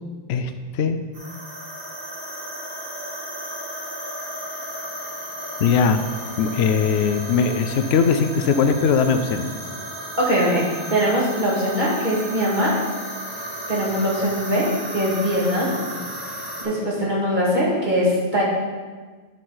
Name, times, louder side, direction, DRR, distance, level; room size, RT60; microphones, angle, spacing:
voice 1, 0.3-1.0 5.6-6.0 6.4-9.5, left 6 dB, 70° left, 8 dB, 0.8 m, -20 dB
sound 1, 1.1-16.6, equal, 60° right, 2.2 m, -34 dB
voice 2, 10.2-10.6 10.9-12.8 13.7-15.7 16.6-18.4, equal, 45° right, -6 dB, 2.3 m, -21 dB
8.9 x 6.2 x 4.0 m, 1.4 s
omnidirectional pair, 1.1 m